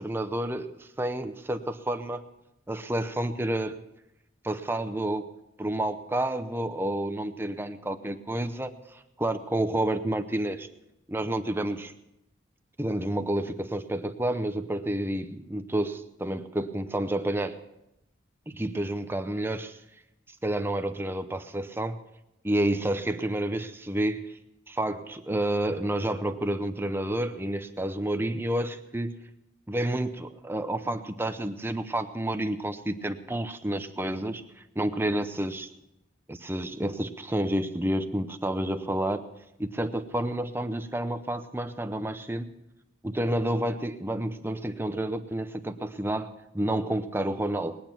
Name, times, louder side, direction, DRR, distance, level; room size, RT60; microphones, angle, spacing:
voice 1, 0.0-2.2 2.7-3.8 4.4-5.3 5.6-10.7 11.1-11.9 12.8-17.6 18.5-19.8 20.4-22.0 22.4-24.3 24.7-29.2 29.7-35.7 36.3-39.2 39.6-42.5 43.0-47.8, right 1 dB, 10° right, 8 dB, 0.7 m, -30 dB
20.5 x 9.1 x 5.9 m, 0.86 s
head